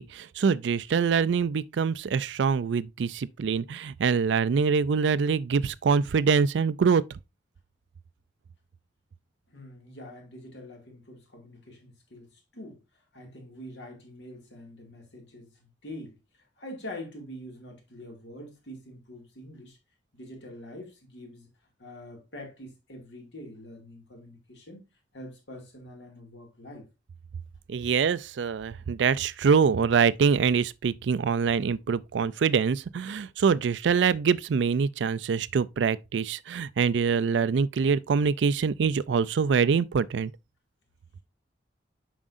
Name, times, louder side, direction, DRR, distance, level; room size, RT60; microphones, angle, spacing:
voice 1, 0.0-7.0 27.7-40.3, right 6 dB, 80° right, 0.4 m, -24 dB
voice 2, 9.5-19.8 20.1-21.5 21.8-24.9 25.1-26.9, left 1 dB, 75° left, 2.2 m, -45 dB
7.3 x 5.1 x 2.5 m
head